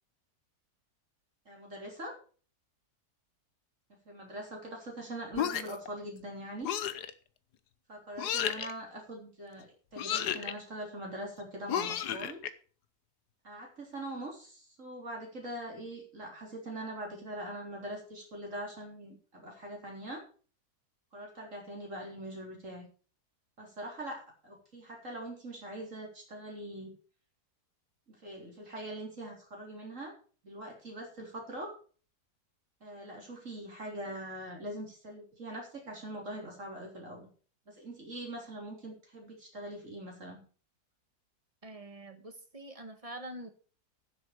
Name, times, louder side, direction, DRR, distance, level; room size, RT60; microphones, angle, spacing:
voice 1, 1.5-2.2 4.1-6.7 7.9-12.4 13.4-20.2 21.1-22.9 23.6-26.9 28.1-30.1 30.4-31.7 32.8-37.3 37.7-40.4, right 1 dB, 50° right, -1 dB, 4.3 m, -42 dB
sound 1, 5.3-5.9 6.6-7.1 8.2-8.7 10.0-10.5 11.7-12.5, left 9 dB, 85° left, 1.5 m, -32 dB
voice 2, 41.6-43.5, right 1 dB, 20° right, 8 dB, 1.6 m, -45 dB
10.5 x 7.9 x 6.6 m, 0.40 s
omnidirectional pair, 1.7 m